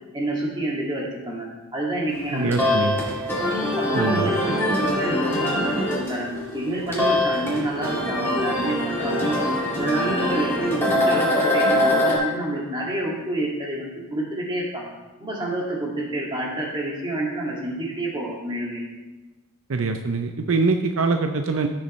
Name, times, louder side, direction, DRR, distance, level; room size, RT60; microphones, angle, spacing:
voice 1, 0.1-1.5 1.7-2.9 3.8-9.4 9.8-14.9 15.2-18.8, right 1 dB, 20° right, -3 dB, 2.1 m, -28 dB
sound 1, 2.2-12.1, left 1 dB, 10° left, 2.1 m, -23 dB
voice 2, 2.3-3.0 3.9-4.3 19.7-21.7, right 3 dB, 70° right, 6 dB, 0.6 m, -23 dB
15.0 x 6.9 x 3.2 m, 1.2 s
head